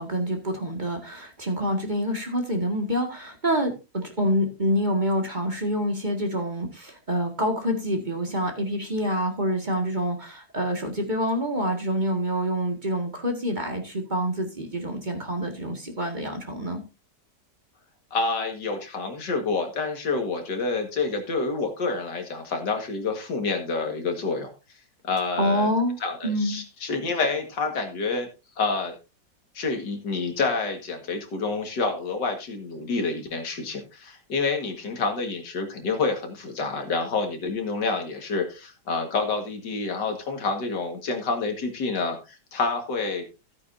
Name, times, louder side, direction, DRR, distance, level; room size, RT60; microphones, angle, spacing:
voice 1, 0.0-16.8 25.4-26.0 26.2-26.6, equal, 25° right, 3 dB, 1.9 m, -27 dB
voice 2, 18.1-24.5 25.0-25.7 26.0-28.3 28.6-29.0 29.5-43.2, left 4 dB, 75° left, 5 dB, 2.4 m, -28 dB
14.5 x 8.7 x 2.7 m, 0.28 s
omnidirectional pair, 1.9 m